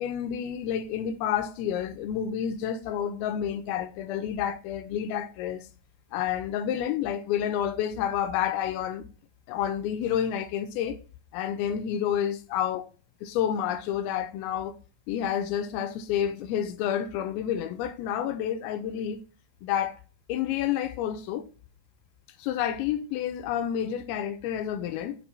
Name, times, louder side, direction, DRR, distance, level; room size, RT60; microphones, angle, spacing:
voice 1, 0.0-5.7 6.1-9.0 9.5-11.0 11.3-12.8 13.2-14.8 15.1-19.2 19.6-20.0 20.3-21.4 22.4-25.2, left 9 dB, 80° left, 2.2 m, -29 dB
6.8 x 2.6 x 5.4 m
omnidirectional pair, 4.7 m